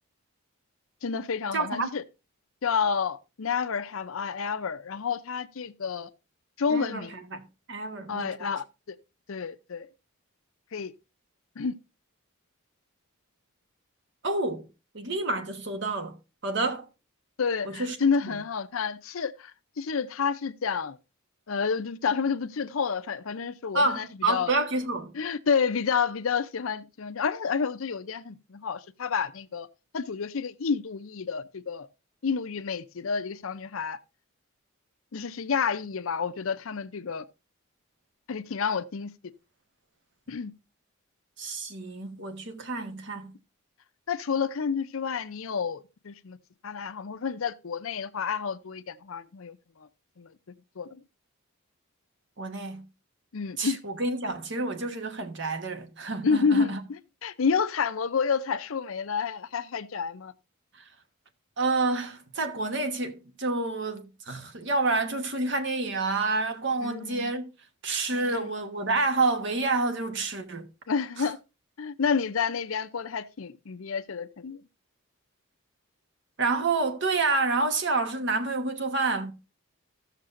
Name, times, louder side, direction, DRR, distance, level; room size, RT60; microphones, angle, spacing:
voice 1, 1.0-2.0 2.6-6.1 6.6-7.1 8.1-9.0 9.3-9.9 10.7-10.9 11.6-11.7 17.4-21.0 21.5-24.5 25.1-29.7 29.9-31.9 32.2-34.0 35.1-37.3 38.3-39.1 40.3-40.5 44.1-46.4 46.6-49.6 50.2-50.3 50.8-51.0 53.3-53.8 56.2-60.3 66.8-67.3 68.1-68.5 70.9-71.4 71.8-74.6, left 6 dB, 70° left, 0.6 m, -29 dB
voice 2, 1.5-1.9 6.7-7.4 7.7-8.5 14.2-14.7 14.9-16.2 16.4-16.9 17.6-18.0 23.7-25.1 41.4-43.3 52.4-52.9 53.6-56.8 61.6-67.5 67.8-70.7 71.2-71.3 76.4-79.3, right 3 dB, 55° right, 1.2 m, -28 dB
16.0 x 6.6 x 2.5 m
head